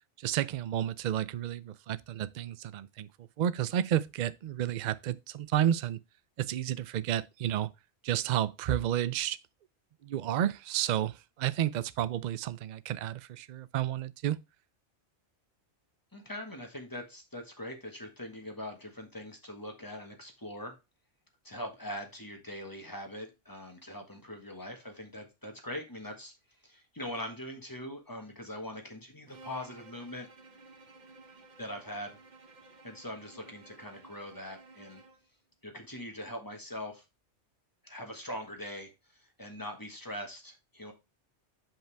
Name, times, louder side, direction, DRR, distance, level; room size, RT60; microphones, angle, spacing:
voice 1, 0.2-6.0 6.4-7.7 8.0-9.4 10.0-14.4, right 11 dB, 60° right, 0.4 m, -31 dB
voice 2, 16.1-20.7 21.4-26.3 26.6-30.3 31.6-32.2 32.8-35.0 35.6-37.0 37.8-40.9, left 1 dB, 15° left, 1.3 m, -42 dB
Bowed string instrument, 29.3-35.3, right 3 dB, 40° right, 1.0 m, -54 dB
7.4 x 5.2 x 3.3 m
omnidirectional pair, 1.2 m